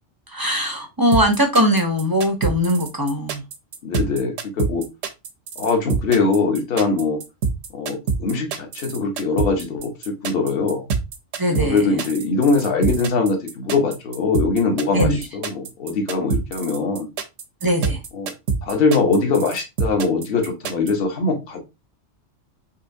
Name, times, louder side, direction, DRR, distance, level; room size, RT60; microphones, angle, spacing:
voice 1, 0.3-3.4 11.4-11.8 14.9-15.2 17.6-18.0, equal, 30° right, 0.4 m, -20 dB
sound 1, 1.1-20.9, right 5 dB, 80° right, 1.1 m, -25 dB
voice 2, 3.8-4.8 5.6-7.2 7.7-10.9 11.5-17.1 18.1-18.3 18.6-21.6, left 4 dB, 50° left, 1.1 m, -22 dB
4.3 x 3.0 x 2.6 m
omnidirectional pair, 1.3 m